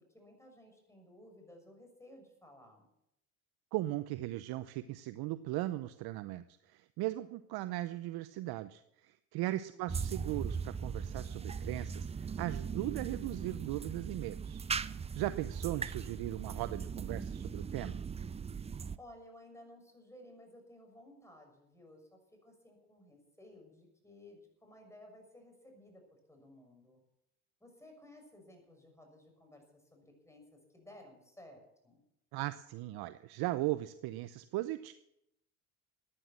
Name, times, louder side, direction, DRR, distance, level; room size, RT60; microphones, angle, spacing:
voice 1, 0.1-2.9 9.4-10.0 18.9-26.0 26.3-27.0 27.6-32.0, left 1 dB, 5° left, 3 dB, 6.5 m, -57 dB
voice 2, 3.7-14.6 15.2-18.0 32.3-34.9, right 16 dB, 55° right, 13 dB, 0.8 m, -38 dB
sound 1, 9.9-19.0, right 6 dB, 15° right, 0.5 m, -39 dB
14.0 x 10.0 x 7.5 m, 0.81 s
hypercardioid pair, 80°, 44 cm